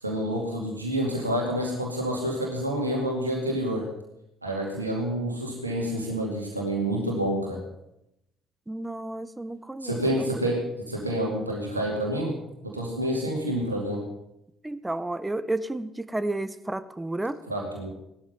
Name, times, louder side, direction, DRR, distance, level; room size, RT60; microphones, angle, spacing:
voice 1, 0.0-3.9 4.4-7.6 9.8-14.1 17.5-17.9, right 1 dB, 85° right, -1 dB, 2.3 m, -28 dB
voice 2, 8.7-10.0 14.6-17.4, right 2 dB, 10° right, 14 dB, 1.1 m, -31 dB
17.5 x 12.5 x 5.5 m, 0.85 s
figure-of-eight pair, 50°, 0 cm